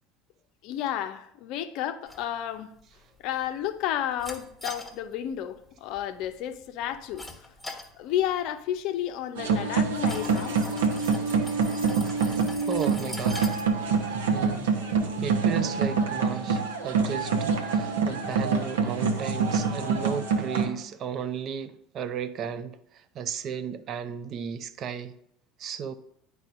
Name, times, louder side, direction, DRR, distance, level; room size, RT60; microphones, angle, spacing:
voice 1, 0.6-2.7 3.2-7.3 7.9-10.6, left 11 dB, 50° left, 0.5 m, -31 dB
sound 1, 2.1-15.4, left 2 dB, ahead, 1.3 m, -45 dB
sound 2, 9.4-20.7, right 5 dB, 70° right, 0.8 m, -26 dB
voice 2, 12.6-13.5 14.0-14.7 15.2-25.1 25.6-25.9, right 7 dB, 40° right, 0.5 m, -35 dB
10.5 x 4.7 x 2.5 m
figure-of-eight pair, 65°, 0 cm